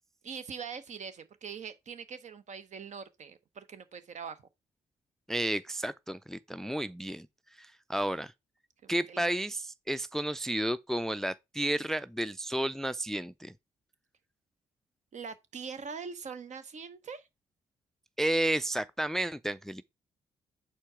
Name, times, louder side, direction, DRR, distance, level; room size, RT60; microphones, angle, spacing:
voice 1, 0.2-4.4 8.0-8.1 8.8-9.2 15.1-17.3, right 6 dB, 55° right, 0.9 m, -43 dB
voice 2, 5.3-7.3 7.6-8.3 8.9-13.5 18.2-19.8, right 1 dB, 5° left, 0.3 m, -32 dB
4.6 x 4.5 x 4.8 m
supercardioid pair, 50°, 15 cm